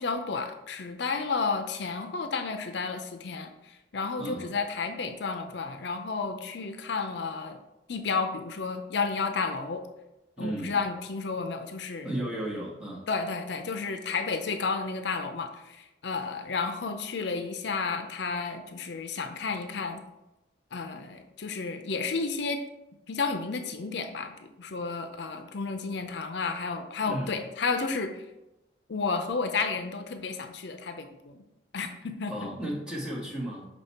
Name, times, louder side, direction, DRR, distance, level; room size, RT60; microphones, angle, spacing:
voice 1, 0.0-7.6 7.9-9.8 10.4-12.1 13.1-20.0 20.7-22.6 23.1-28.2 28.9-31.4 31.7-32.5, left 4 dB, 65° left, 7 dB, 0.6 m, -32 dB
voice 2, 4.2-4.5 10.4-10.9 12.0-13.1 27.1-27.3 32.2-33.7, right 1 dB, 5° right, -5 dB, 1.5 m, -34 dB
5.9 x 5.3 x 4.2 m, 0.94 s
head